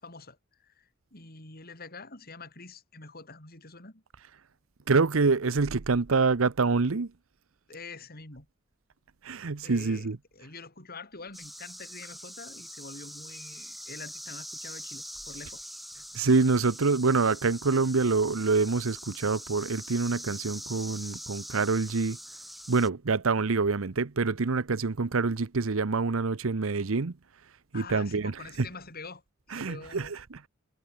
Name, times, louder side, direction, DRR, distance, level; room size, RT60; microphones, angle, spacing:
voice 1, 0.0-4.0 7.7-8.5 9.6-15.6 27.7-29.2 29.5-30.2, left 4 dB, 50° left, 6.4 m, -46 dB
voice 2, 4.9-7.1 9.2-10.2 16.1-22.2 22.7-27.1 27.7-28.3 29.5-30.4, right 4 dB, 85° right, 0.8 m, -26 dB
sound 1, 11.3-22.9, equal, ahead, 0.7 m, -43 dB
head